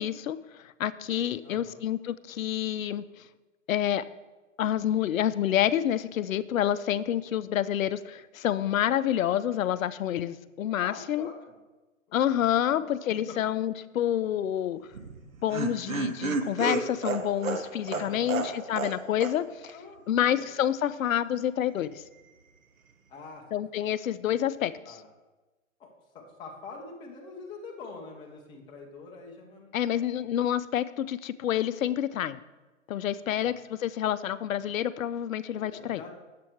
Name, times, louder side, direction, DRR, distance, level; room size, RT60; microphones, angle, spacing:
voice 1, 0.0-3.2 3.7-4.0 4.6-11.3 12.1-14.9 15.4-19.7 20.1-22.0 23.5-25.0 29.7-32.4 32.9-36.0, left 11 dB, 80° left, 15 dB, 0.6 m, -28 dB
voice 2, 1.4-1.8 10.8-11.6 12.1-12.2 12.4-12.9 13.3-13.4 17.9-18.4 19.7-20.5 23.1-23.6 24.8-25.1 25.8-30.0 33.2-33.6 35.5-36.2, left 4 dB, 10° left, -1 dB, 0.9 m, -45 dB
Laughter, 14.9-19.0 19.2-19.3 19.6-19.7, right 4 dB, 85° right, 1.2 m, -31 dB
8.6 x 7.6 x 4.5 m, 1.2 s
hypercardioid pair, 150°, 40 cm